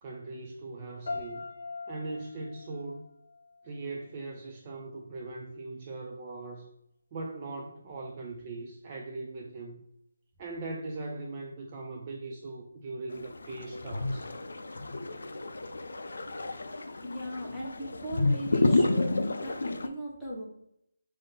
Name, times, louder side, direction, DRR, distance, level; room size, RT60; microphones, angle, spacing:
voice 1, 0.0-1.4 1.9-3.1 3.6-6.7 7.1-9.8 10.4-14.3, right 3 dB, 25° right, 0 dB, 0.4 m, -40 dB
sound 1, 1.1-4.0, left 3 dB, 60° left, 0.9 m, -42 dB
sound 2, 13.1-19.9, left 2 dB, 75° left, 0.4 m, -30 dB
voice 2, 17.0-20.5, equal, 5° left, -8 dB, 0.8 m, -39 dB
3.6 x 2.6 x 3.7 m, 0.75 s
figure-of-eight pair, 165°, 0 cm